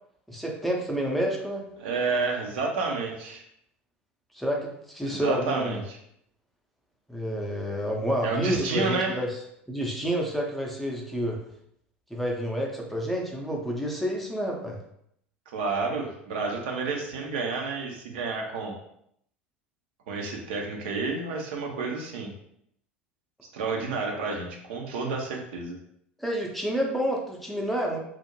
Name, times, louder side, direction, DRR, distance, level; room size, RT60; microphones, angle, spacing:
voice 1, 0.3-1.6 4.3-5.8 7.1-9.4 9.7-11.4 12.1-14.8 26.2-28.0, equal, ahead, -1 dB, 0.5 m, -29 dB
voice 2, 1.8-3.4 5.0-6.0 8.2-9.2 15.5-18.7 20.1-22.3 23.5-25.8, right 4 dB, 65° right, 1 dB, 0.5 m, -30 dB
2.4 x 2.0 x 3.0 m, 0.72 s
figure-of-eight pair, 75°, 6 cm